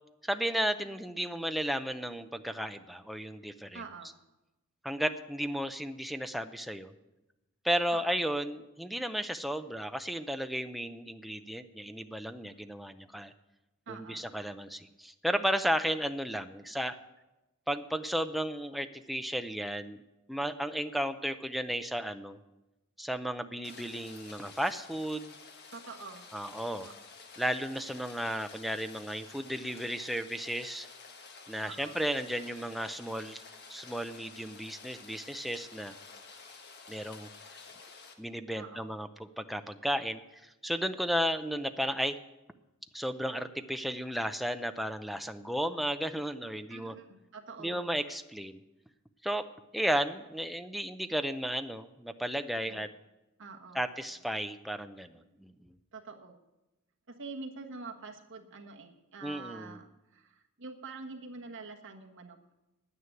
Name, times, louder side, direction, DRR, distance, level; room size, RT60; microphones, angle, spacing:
voice 1, 0.2-3.8 4.8-6.9 7.6-13.3 13.9-17.0 17.7-20.0 20.3-22.4 23.0-25.3 26.3-26.9 27.4-30.9 31.5-33.4 33.7-35.9 36.9-37.3 38.2-42.2 42.9-46.9 47.6-48.6 49.2-49.5 49.7-52.9 53.7-55.5 59.2-59.8, equal, ahead, 8 dB, 0.5 m, -34 dB
voice 2, 3.7-4.2 7.9-8.2 13.9-14.3 25.7-26.2 26.8-26.9 31.6-32.0 38.5-38.9 46.7-47.9 52.6-52.8 53.4-54.1 55.9-56.4 57.1-62.4, right 4 dB, 60° right, 3 dB, 1.4 m, -46 dB
Rain, 23.6-38.1, left 4 dB, 50° left, 1.5 m, -51 dB
9.7 x 9.4 x 9.0 m, 1.0 s
head